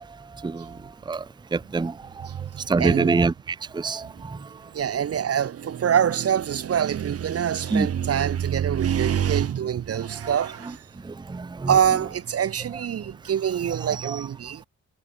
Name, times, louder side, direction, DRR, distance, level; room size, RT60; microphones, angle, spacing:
voice 1, 1.5-1.9 2.7-4.4 7.7-7.9 10.2-10.3 11.0-11.7 14.0-14.2, right 4 dB, 15° right, 0.6 m, -25 dB
voice 2, 2.2-3.2 4.1-4.2 4.7-10.8 11.7-14.7, right 9 dB, 50° right, 0.8 m, -25 dB
cardioid pair, 90°, 31 cm